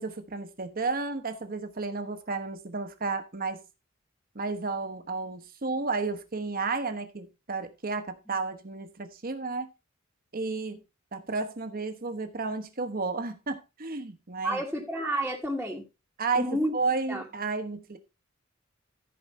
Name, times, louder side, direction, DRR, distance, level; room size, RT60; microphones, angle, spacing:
voice 1, 0.0-3.6 4.3-9.7 10.3-10.8 11.1-14.6 16.2-18.0, right 3 dB, 45° right, 1.2 m, -32 dB
voice 2, 14.4-15.8 16.3-16.7 17.1-17.2, right 1 dB, ahead, 1.5 m, -30 dB
14.5 x 4.9 x 4.1 m
head